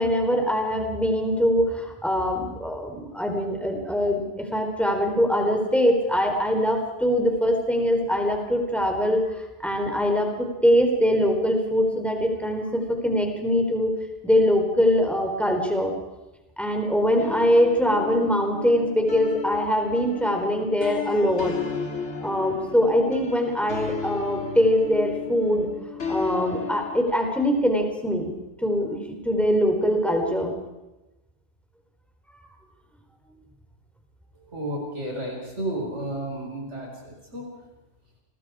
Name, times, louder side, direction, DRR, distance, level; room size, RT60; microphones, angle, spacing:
voice 1, 0.0-13.9 14.2-15.9 16.6-21.5 22.2-25.7 26.1-28.3 28.6-30.5, equal, ahead, 2 dB, 4.0 m, -23 dB
sound 1, 17.2-27.0, left 5 dB, 70° left, 2.4 m, -34 dB
voice 2, 34.5-37.5, right 1 dB, 70° right, -2 dB, 5.6 m, -32 dB
30.0 x 21.5 x 4.9 m, 1.0 s
omnidirectional pair, 1.2 m